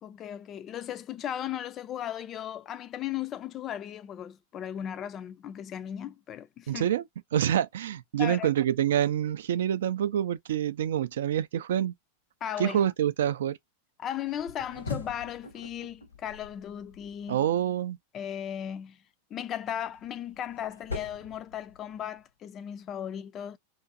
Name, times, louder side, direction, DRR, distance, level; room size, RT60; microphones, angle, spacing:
voice 1, 0.0-6.9 8.2-8.5 12.4-12.8 14.0-17.5 18.1-19.0 19.3-23.6, left 10 dB, 30° left, 0.3 m, -36 dB
voice 2, 6.7-7.0 7.3-11.9 12.6-13.6 17.3-18.0, right 10 dB, 60° right, 0.3 m, -27 dB
sound 1, 14.3-17.4 19.6-22.2, left 4 dB, 80° left, 1.0 m, -42 dB
2.5 x 2.5 x 2.5 m
figure-of-eight pair, 90°, 0 cm